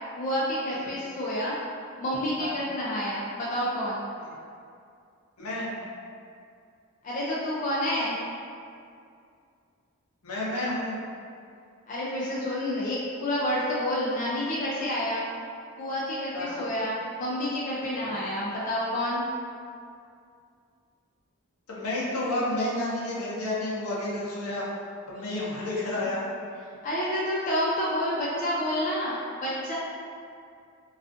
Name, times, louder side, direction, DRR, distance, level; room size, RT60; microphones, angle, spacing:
voice 1, 0.2-1.6 2.0-4.1 7.0-8.2 11.9-15.2 15.8-19.2 26.8-29.8, left 1 dB, 35° left, -7 dB, 0.3 m, -29 dB
voice 2, 5.4-5.8 10.2-11.0 16.3-16.6 18.0-18.2 21.7-24.7 25.1-26.2, left 1 dB, 85° left, -6 dB, 0.6 m, -31 dB
2.4 x 2.4 x 2.4 m, 2.3 s
head